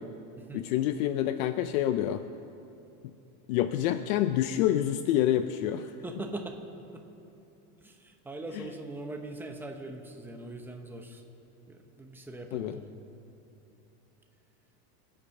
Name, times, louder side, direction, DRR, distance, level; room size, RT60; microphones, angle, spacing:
voice 1, 0.5-2.2 3.5-5.9 12.5-12.8, left 12 dB, 65° left, 10 dB, 0.7 m, -27 dB
voice 2, 6.0-6.6 6.9-7.0 7.8-11.2 11.7-12.9, right 2 dB, 5° right, 3 dB, 0.9 m, -41 dB
25.0 x 8.8 x 5.4 m, 2.9 s
supercardioid pair, 155°, 44 cm